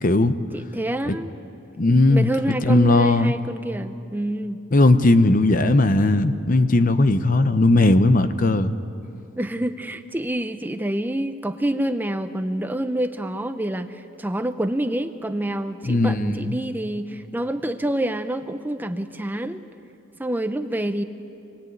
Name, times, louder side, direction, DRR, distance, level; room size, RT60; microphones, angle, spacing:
voice 1, 0.0-0.4 1.1-1.2 1.8-3.3 4.7-8.7 15.8-16.6, left 2 dB, 40° left, 11 dB, 0.8 m, -18 dB
voice 2, 0.5-1.3 2.1-4.6 9.4-19.6 20.2-21.0, right 1 dB, 10° right, 9 dB, 0.6 m, -27 dB
26.0 x 20.0 x 9.4 m, 2.8 s
head